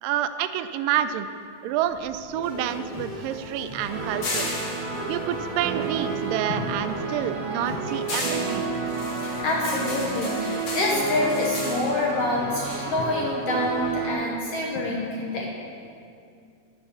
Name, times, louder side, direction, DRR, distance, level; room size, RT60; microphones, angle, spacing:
voice 1, 0.0-1.3 1.6-4.5 5.1-8.7, right 11 dB, 85° right, 11 dB, 2.2 m, -28 dB
sound 1, 1.9-6.4 6.7-13.1, left 2 dB, 45° left, 2.1 m, -36 dB
sound 2, 2.4-10.4, equal, 25° left, 1.1 m, -39 dB
sound 3, 3.9-14.1, right 5 dB, 65° right, 2.1 m, -31 dB
voice 2, 9.1-15.5, left 2 dB, 65° left, -2 dB, 1.6 m, -27 dB
10.5 x 6.8 x 6.9 m, 2.4 s
omnidirectional pair, 3.8 m